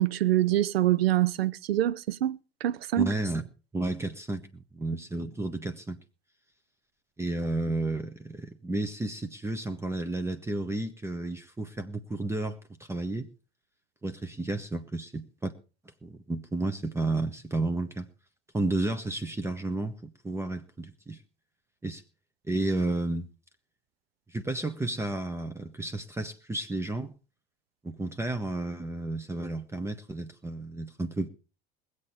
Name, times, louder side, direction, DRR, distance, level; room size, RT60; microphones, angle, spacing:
voice 1, 0.0-3.1, right 13 dB, 70° right, 0.6 m, -25 dB
voice 2, 3.0-3.4 3.7-6.0 7.2-13.3 14.0-15.5 16.0-18.1 18.5-21.2 21.8-22.0 22.5-23.3 24.3-27.1 27.8-31.3, right 2 dB, 10° right, 1.0 m, -32 dB
22.0 x 8.2 x 4.2 m
figure-of-eight pair, 75°, 32 cm